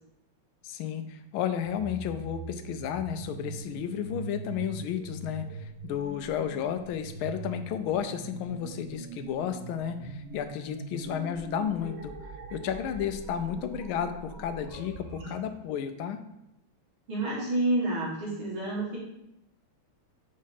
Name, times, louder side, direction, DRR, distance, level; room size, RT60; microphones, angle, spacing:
voice 1, 0.6-12.1 12.5-16.2, left 9 dB, 80° left, 8 dB, 1.4 m, -32 dB
sound 1, 1.6-15.3, right 4 dB, 55° right, 1.1 m, -42 dB
voice 2, 17.1-19.0, right 2 dB, 80° right, -6 dB, 2.8 m, -29 dB
6.2 x 3.2 x 5.7 m, 0.85 s
omnidirectional pair, 2.3 m